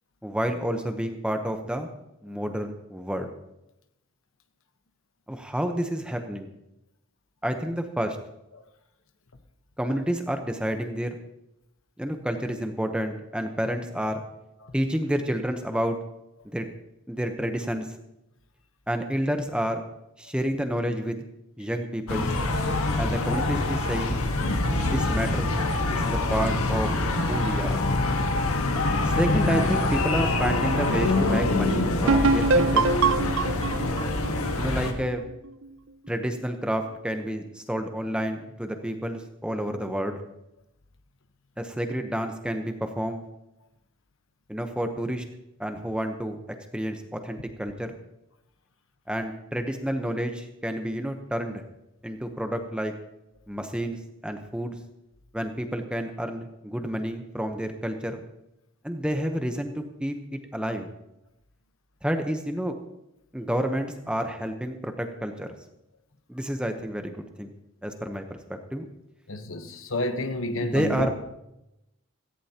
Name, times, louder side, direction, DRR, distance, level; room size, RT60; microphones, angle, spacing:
voice 1, 0.2-1.9 2.2-3.3 5.3-6.5 7.4-8.2 9.8-11.1 12.0-14.2 14.7-16.0 16.4-16.7 17.1-17.9 18.9-19.8 20.2-21.2 21.6-22.3 23.0-24.2 24.8-25.5 25.9-26.9 27.3-27.8 29.0-32.9 34.6-35.3 36.1-40.2 41.6-43.2 44.5-45.2 45.6-46.4 46.7-48.0 49.1-51.6 52.0-52.9 53.5-54.8 55.3-58.2 58.8-60.9 62.0-62.7 63.3-65.5 66.3-67.5 67.8-68.8 70.6-71.2, equal, 5° right, 5 dB, 0.8 m, -29 dB
sound 1, 22.1-34.9, left 2 dB, 80° left, 1.5 m, -25 dB
sound 2, 32.1-35.7, right 3 dB, 60° right, 0.4 m, -24 dB
voice 2, 69.3-71.1, left 1 dB, 65° left, 8 dB, 1.1 m, -30 dB
17.0 x 15.0 x 2.9 m, 0.87 s
head